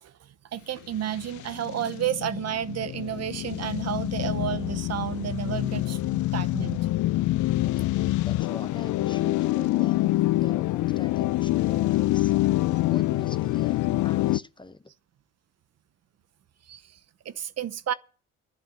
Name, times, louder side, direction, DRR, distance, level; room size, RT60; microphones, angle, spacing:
voice 1, 0.0-6.9 16.6-17.0 17.2-17.9, right 10 dB, 55° right, 0.9 m, -31 dB
sound 1, 1.1-14.4, left 17 dB, 75° left, 0.5 m, -26 dB
voice 2, 8.2-12.3 12.8-14.9, left 2 dB, 15° left, 0.8 m, -43 dB
11.5 x 7.4 x 7.8 m
cardioid pair, 90°, 30 cm